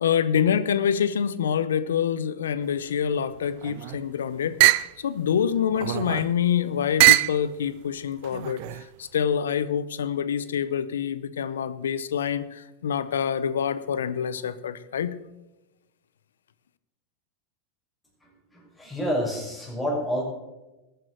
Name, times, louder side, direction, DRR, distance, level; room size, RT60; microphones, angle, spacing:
voice 1, 0.0-4.6 5.0-15.2, left 8 dB, 85° left, 16 dB, 0.7 m, -26 dB
sound 1, 3.5-4.0 4.6-4.9 5.7-6.4 7.0-7.4 8.2-8.9, right 20 dB, 60° right, 0.4 m, -21 dB
voice 2, 18.2-20.2, equal, 10° left, -1 dB, 5.5 m, -29 dB
14.0 x 9.2 x 6.3 m, 1.0 s
hypercardioid pair, 105°, 0 cm